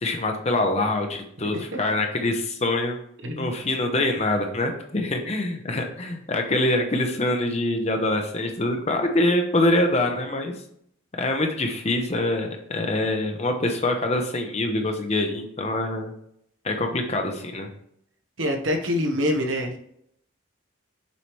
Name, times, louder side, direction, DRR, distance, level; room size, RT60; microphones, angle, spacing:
voice 1, 0.0-3.0 3.4-10.5 11.2-16.1 16.6-17.7, left 2 dB, 35° left, 4 dB, 0.7 m, -24 dB
voice 2, 3.2-3.6 18.4-19.8, left 1 dB, 90° right, 3 dB, 1.2 m, -25 dB
7.0 x 4.8 x 3.2 m, 0.70 s
head